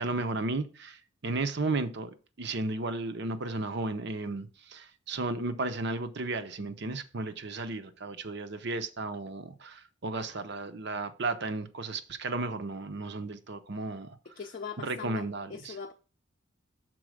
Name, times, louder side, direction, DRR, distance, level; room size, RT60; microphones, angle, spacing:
voice 1, 0.0-14.2 14.8-15.7, right 3 dB, 55° right, 0.7 m, -34 dB
voice 2, 14.4-15.9, left 6 dB, 45° left, 0.5 m, -41 dB
6.1 x 4.3 x 6.3 m
head